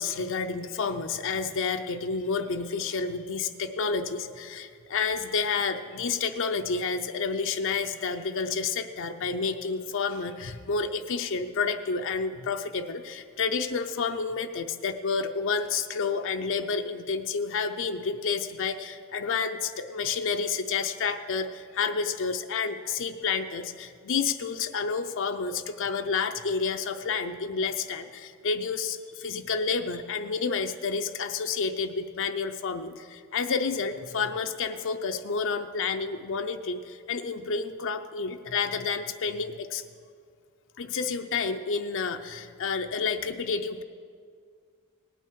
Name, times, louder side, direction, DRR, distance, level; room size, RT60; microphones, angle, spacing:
voice 1, 0.0-39.8 40.8-43.8, left 5 dB, 60° left, 7 dB, 0.6 m, -30 dB
18.5 x 9.0 x 4.7 m, 2.1 s
head